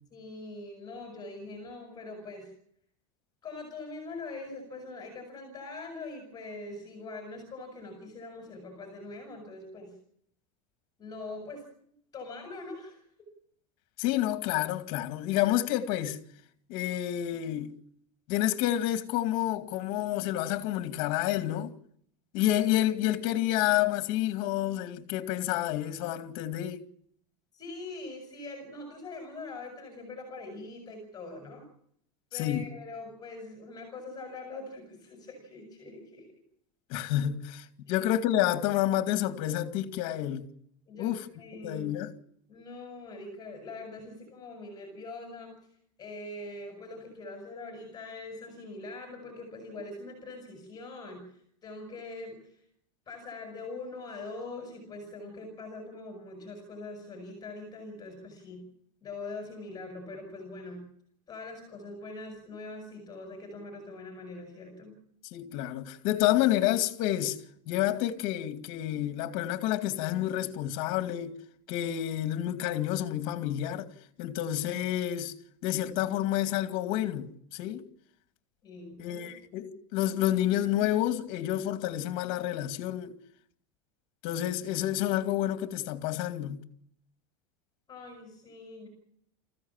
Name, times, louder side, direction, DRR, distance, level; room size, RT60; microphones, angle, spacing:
voice 1, 0.1-2.5 3.4-9.9 11.0-11.7 12.1-13.0 27.5-31.6 32.3-36.3 37.8-38.1 40.9-41.9 42.5-45.6 46.0-52.6 53.1-58.7 59.0-60.9 61.3-65.0 78.6-79.3 79.6-79.8 87.9-88.9, left 3 dB, 25° left, 7.2 m, -43 dB
voice 2, 14.0-16.2 16.7-17.7 18.3-21.7 22.3-26.8 32.3-32.7 36.9-40.5 41.0-41.2 41.6-42.1 65.3-67.4 67.7-71.3 71.7-73.9 74.2-75.3 75.6-77.8 79.0-83.1 84.2-86.6, left 13 dB, 55° left, 2.4 m, -29 dB
25.5 x 15.5 x 7.4 m
supercardioid pair, 140°, 17 cm